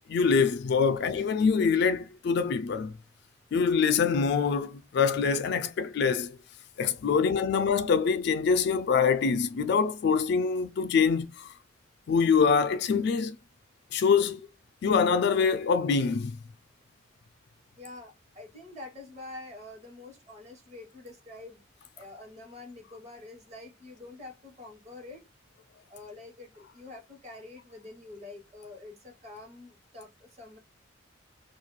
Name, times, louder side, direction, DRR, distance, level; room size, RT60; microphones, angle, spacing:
voice 1, 0.1-2.9 3.5-6.4 6.8-11.5 12.1-13.4 13.9-14.5 14.8-16.4, left 5 dB, 55° left, 0.3 m, -25 dB
voice 2, 17.8-21.6 22.0-25.3 25.9-30.6, left 2 dB, 35° right, 1.0 m, -46 dB
2.4 x 2.1 x 3.0 m
head